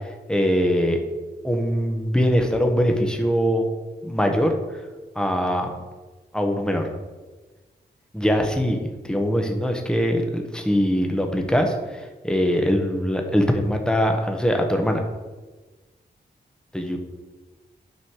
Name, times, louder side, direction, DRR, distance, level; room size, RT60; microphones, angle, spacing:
voice 1, 0.3-1.0 1.4-3.7 4.0-4.6 5.1-5.7 6.3-6.9 8.1-15.0 16.7-17.0, equal, 5° left, 3 dB, 1.4 m, -22 dB
9.6 x 5.6 x 4.8 m, 1.3 s
cardioid pair, 70°, 18 cm